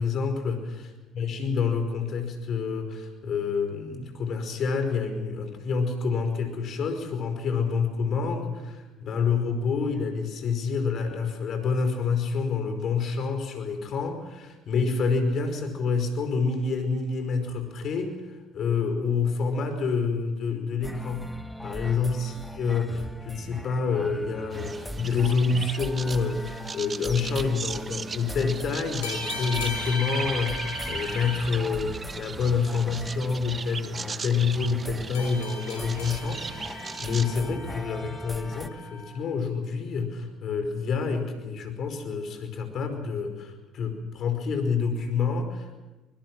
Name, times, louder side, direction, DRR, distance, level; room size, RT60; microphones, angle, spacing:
voice 1, 0.0-0.9 1.1-21.3 21.6-45.8, left 5 dB, 55° left, 7 dB, 5.1 m, -28 dB
sound 1, 20.8-38.7, equal, ahead, 1.5 m, -40 dB
sound 2, 24.5-37.4, right 5 dB, 35° right, 1.1 m, -38 dB
sound 3, 25.7-26.8 29.0-31.4 35.1-39.1, left 4 dB, 85° left, 5.8 m, -39 dB
25.0 x 21.5 x 6.2 m, 1.1 s
hypercardioid pair, 65°, 0 cm